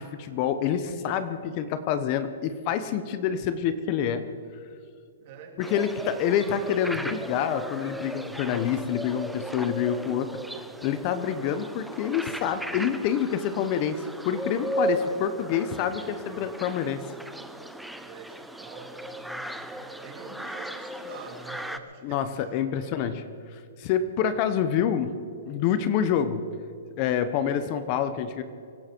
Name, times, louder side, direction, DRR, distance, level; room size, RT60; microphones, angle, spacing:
voice 1, 0.0-4.2 5.6-10.4 10.8-17.0 22.0-23.1 23.8-25.1 25.4-26.4 27.0-28.4, left 8 dB, 35° left, 12 dB, 1.0 m, -27 dB
voice 2, 5.2-5.7 15.1-15.2 18.0-23.2 24.3-24.6, right 5 dB, 40° right, 3 dB, 3.0 m, -46 dB
sound 1, 5.6-21.8, right 1 dB, ahead, 0.7 m, -36 dB
24.5 x 11.5 x 4.6 m, 2.4 s
hypercardioid pair, 150°, 0 cm